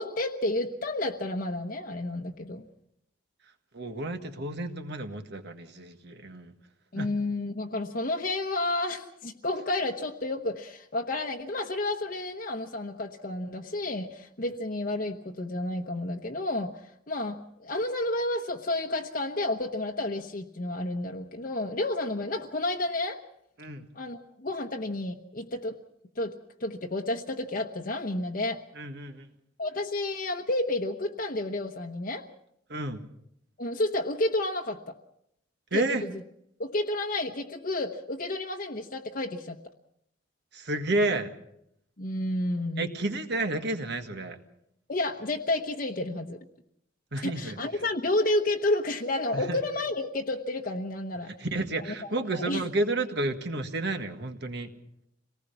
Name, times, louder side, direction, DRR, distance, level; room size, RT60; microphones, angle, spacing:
voice 1, 0.0-2.6 6.9-23.2 23.9-25.8 26.2-28.6 29.6-32.3 33.6-35.0 35.7-36.1 36.6-39.6 42.0-42.9 44.9-46.4 47.2-51.3 51.8-51.9 52.3-52.6, left 2 dB, 45° left, 2 dB, 1.1 m, -31 dB
voice 2, 3.7-6.5 6.9-7.1 23.6-23.9 28.7-29.3 32.7-33.0 35.7-36.0 40.5-41.3 42.8-44.4 47.1-47.6 49.3-49.6 51.3-54.7, right 2 dB, 60° right, 7 dB, 1.7 m, -31 dB
26.5 x 18.5 x 5.8 m, 0.74 s
head